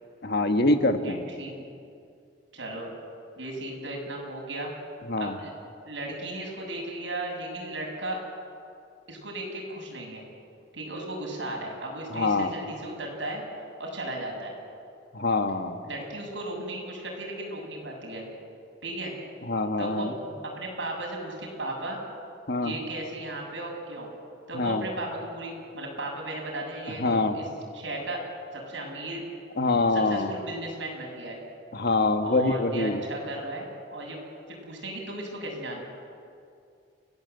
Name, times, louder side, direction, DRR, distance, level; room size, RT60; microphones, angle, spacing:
voice 1, 0.2-1.3 5.1-5.4 12.1-12.5 15.1-15.8 19.4-20.1 22.5-22.8 24.5-24.8 27.0-27.4 29.6-30.3 31.7-33.0, left 2 dB, 60° left, 7 dB, 1.7 m, -25 dB
voice 2, 1.0-1.5 2.5-2.9 3.4-4.7 5.2-5.5 5.9-8.2 9.1-10.2 10.7-13.4 13.8-14.5 15.8-18.2 18.8-19.1 19.8-22.0 22.6-24.1 24.5-27.5 27.7-28.2 28.5-29.2 29.9-31.4 32.2-34.2 34.5-35.8, right 1 dB, 85° right, 0 dB, 7.4 m, -35 dB
30.0 x 18.5 x 8.2 m, 2.4 s
head